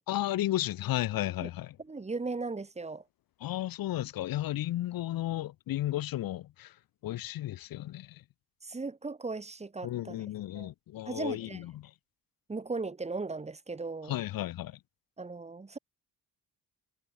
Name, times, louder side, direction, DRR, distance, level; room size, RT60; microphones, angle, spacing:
voice 1, 0.1-1.8 3.4-6.7 7.0-8.2 9.8-11.9 14.1-14.8, left 14 dB, 75° left, 0.8 m, -33 dB
voice 2, 1.9-3.0 8.6-10.2 10.5-10.7 11.1-11.6 12.5-14.1 15.2-15.8, right 3 dB, 20° right, 1.3 m, -37 dB
cardioid pair, 110°, 35 cm